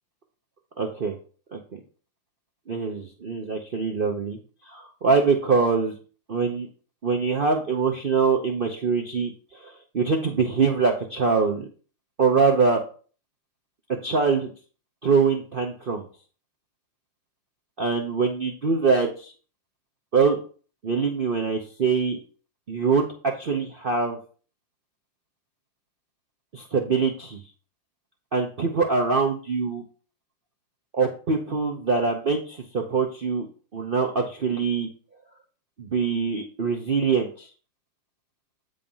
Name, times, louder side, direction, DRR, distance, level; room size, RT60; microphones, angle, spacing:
voice 1, 0.8-1.2 1.5-1.8 2.7-4.4 4.7-5.9 6.3-6.7 7.0-11.7 12.2-12.8 14.0-14.5 15.0-16.1 17.8-19.3 20.1-20.4 20.8-22.2 22.7-24.2 26.5-27.4 28.3-29.8 30.9-33.5 33.7-34.9 35.8-37.5, right 5 dB, 90° right, 2 dB, 0.4 m, -24 dB
8.9 x 3.7 x 5.5 m, 0.40 s
omnidirectional pair, 2.3 m